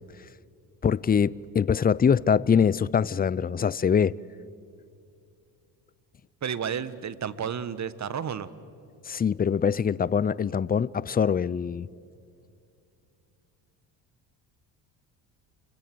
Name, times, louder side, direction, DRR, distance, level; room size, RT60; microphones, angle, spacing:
voice 1, 0.8-4.1 9.1-11.9, left 7 dB, 20° left, 0.5 m, -23 dB
voice 2, 6.4-8.5, right 7 dB, 40° right, 1.4 m, -31 dB
29.5 x 24.0 x 7.9 m
supercardioid pair, 75°, 42 cm